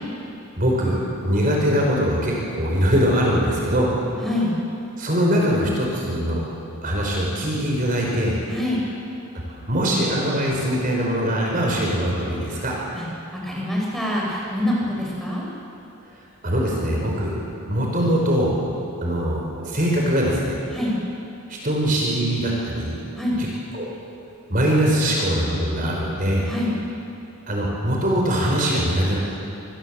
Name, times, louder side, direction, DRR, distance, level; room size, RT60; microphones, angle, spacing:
voice 1, 0.6-1.0 1.2-3.9 5.0-6.4 6.8-8.4 9.5-12.7 16.4-17.3 17.7-18.5 19.0-20.6 21.5-22.9 23.4-23.5 23.7-23.9 24.5-26.5 27.5-29.2, equal, 40° right, -2 dB, 4.7 m, -22 dB
voice 2, 4.2-4.5 8.5-8.8 12.9-13.0 13.3-15.4 20.7-21.0 23.1-23.4 26.4-26.7, left 1 dB, ahead, -4 dB, 6.0 m, -25 dB
26.5 x 20.5 x 7.6 m, 2.7 s
head